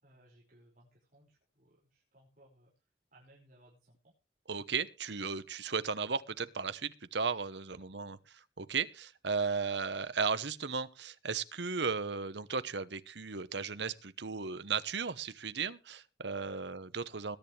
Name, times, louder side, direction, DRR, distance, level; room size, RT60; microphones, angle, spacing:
voice 1, 0.0-2.7 3.1-4.1 7.7-7.8 16.4-16.6 17.1-17.2, right 1 dB, 45° right, 5.6 m, -62 dB
voice 2, 4.5-8.2 8.6-17.4, right 5 dB, 75° right, 1.1 m, -35 dB
21.0 x 10.5 x 3.3 m
head